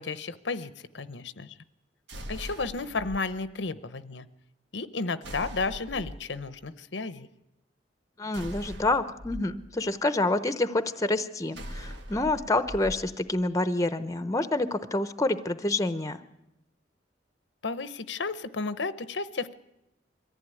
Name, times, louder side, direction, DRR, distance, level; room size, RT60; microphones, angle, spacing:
voice 1, 0.0-1.5 2.3-4.3 4.7-7.3 17.6-19.5, left 4 dB, 75° left, 14 dB, 0.8 m, -33 dB
sound 1, 2.1-3.2 5.2-6.3 8.3-9.4 11.5-13.0, equal, 70° right, 1.9 m, -40 dB
voice 2, 8.2-16.2, left 2 dB, 20° left, 11 dB, 0.8 m, -27 dB
23.0 x 14.5 x 9.6 m, 0.92 s
head